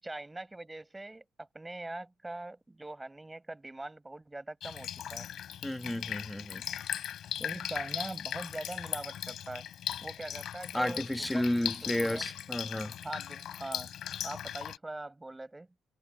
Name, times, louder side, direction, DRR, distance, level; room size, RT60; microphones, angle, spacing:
voice 1, 0.0-5.3 7.4-9.7 10.0-12.2 13.0-13.9 14.2-15.7, right 2 dB, 15° right, 6.7 m, -42 dB
Drip, 4.6-14.8, left 10 dB, 70° left, 6.1 m, -38 dB
voice 2, 5.6-6.6 10.7-12.9, left 1 dB, 5° left, 2.0 m, -32 dB
cardioid pair, 90°, 0 cm